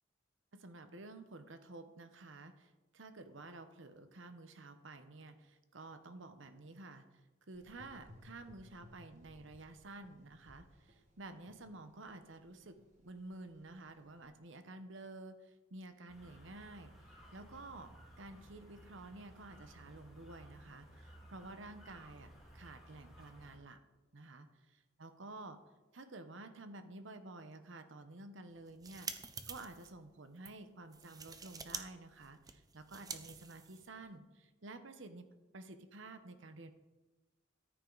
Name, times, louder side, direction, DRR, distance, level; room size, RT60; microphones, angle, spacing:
voice 1, 0.5-7.1 7.5-12.8 13.0-16.9 17.3-23.8 24.1-25.6 25.9-35.3 35.5-36.7, right 2 dB, 70° right, 9 dB, 1.0 m, -51 dB
Gurgling / Engine, 7.5-14.3, equal, 35° right, 1.8 m, -62 dB
sound 1, 16.1-23.6, right 1 dB, ahead, 3.7 m, -58 dB
sound 2, 28.6-29.9 30.4-30.5 30.9-34.1, right 5 dB, 20° right, 0.7 m, -47 dB
13.5 x 10.5 x 4.0 m, 1.1 s
head